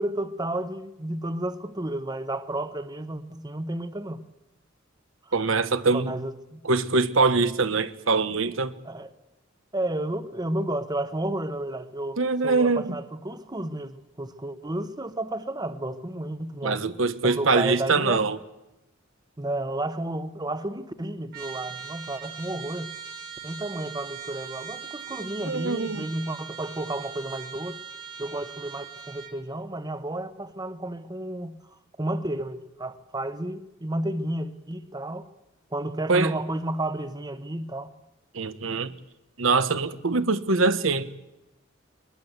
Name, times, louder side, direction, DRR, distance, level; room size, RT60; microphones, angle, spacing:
voice 1, 0.0-4.2 5.9-6.6 8.8-9.1 9.7-16.8 17.2-18.2 19.4-22.9 23.4-27.8 28.2-31.6 32.0-35.3 35.7-37.9, right 1 dB, 20° right, 1.0 m, -32 dB
voice 2, 5.3-6.1 6.6-8.7 12.2-13.0 16.6-18.4 25.5-26.0 36.1-36.3 38.3-38.9 39.4-41.1, right 3 dB, 80° right, 1.2 m, -23 dB
Trumpet, 21.3-29.4, right 6 dB, 50° right, 2.4 m, -40 dB
22.0 x 21.0 x 8.1 m
head